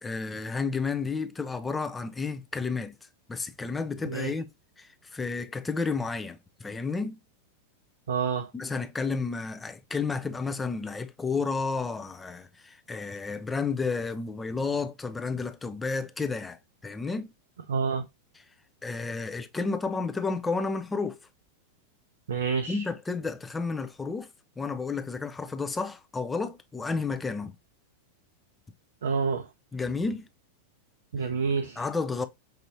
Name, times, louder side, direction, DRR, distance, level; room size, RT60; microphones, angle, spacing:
voice 1, 0.0-2.9 3.3-4.5 4.8-7.2 8.5-17.3 18.3-18.4 18.8-21.2 22.7-24.3 24.6-27.5 29.7-30.3 31.8-32.3, left 4 dB, 10° left, 0.4 m, -31 dB
voice 2, 8.1-8.5 17.7-18.0 22.3-22.8 29.0-29.4 31.1-31.8, right 5 dB, 65° right, 0.4 m, -28 dB
5.3 x 2.7 x 2.6 m
figure-of-eight pair, 90°, 0 cm